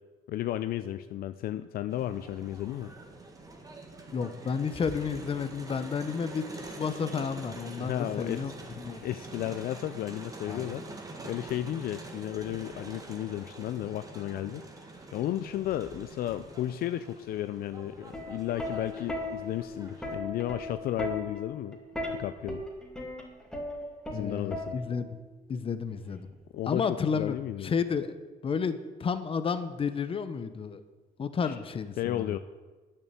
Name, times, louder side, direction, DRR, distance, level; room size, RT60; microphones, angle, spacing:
voice 1, 0.3-2.9 7.8-8.4 9.0-10.8 11.2-21.8 22.1-22.6 24.1-24.8 26.5-26.9 27.1-27.7 31.4-31.6 32.0-32.4, left 12 dB, 65° left, 12 dB, 0.4 m, -33 dB
Crowd, 1.9-20.1, right 2 dB, 20° right, 1.6 m, -46 dB
voice 2, 4.1-8.5 8.8-9.0 10.5-10.7 24.1-25.2 25.5-26.3 26.7-27.3 27.6-28.2 28.4-30.8 31.2-32.4, left 6 dB, 30° left, 11 dB, 0.8 m, -31 dB
Plucked string instrument, 18.0-25.2 26.2-26.6, left 1 dB, 5° left, 2.4 m, -37 dB
9.0 x 6.8 x 8.3 m, 1.3 s
cardioid pair, 110°, 17 cm